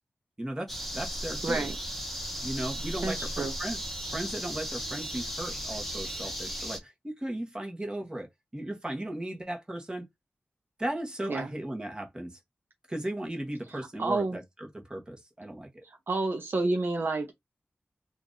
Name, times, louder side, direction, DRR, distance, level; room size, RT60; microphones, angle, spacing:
voice 1, 0.4-1.7 2.4-3.8 4.1-8.3 8.5-10.1 10.8-12.4 12.9-15.7, right 1 dB, 20° right, 1.2 m, -36 dB
sound 1, 0.7-6.8, equal, 5° left, 1.0 m, -36 dB
voice 2, 1.4-1.8 3.0-3.5 11.3-11.5 13.7-14.4 16.1-17.3, right 3 dB, 60° right, 0.7 m, -29 dB
2.9 x 2.5 x 3.8 m
wide cardioid pair, 115°, 4 cm